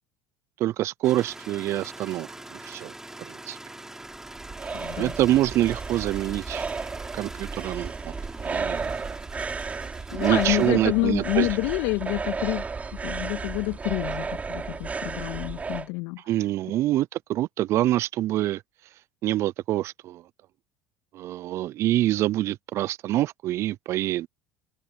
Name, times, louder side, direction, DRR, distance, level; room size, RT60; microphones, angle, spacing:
voice 1, 0.6-2.9 3.3-3.6 5.0-6.6 7.1-8.1 8.4-9.0 10.1-11.5 16.3-18.6 19.2-20.2 21.1-24.3, right 14 dB, 55° right, 0.5 m, -26 dB
sound 1, 1.0-10.7, right 1 dB, 10° right, 3.3 m, -43 dB
sound 2, 4.0-15.9, right 4 dB, 25° right, 5.9 m, -33 dB
voice 2, 4.7-5.2 10.1-12.7 12.9-16.7, left 27 dB, 70° left, 2.1 m, -28 dB
open air
hypercardioid pair, 70°, 6 cm